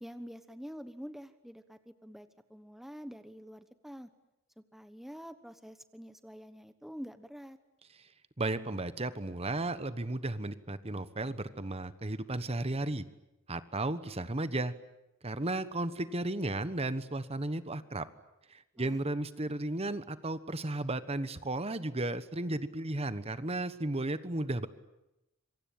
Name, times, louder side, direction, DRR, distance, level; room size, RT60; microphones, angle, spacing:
voice 1, 0.0-4.1 4.6-7.6 18.8-19.0, equal, ahead, 10 dB, 1.1 m, -47 dB
voice 2, 8.4-13.0 13.5-14.7 15.2-18.1 18.5-24.7, right 2 dB, 30° right, 13 dB, 1.2 m, -34 dB
26.5 x 24.0 x 8.8 m, 0.93 s
head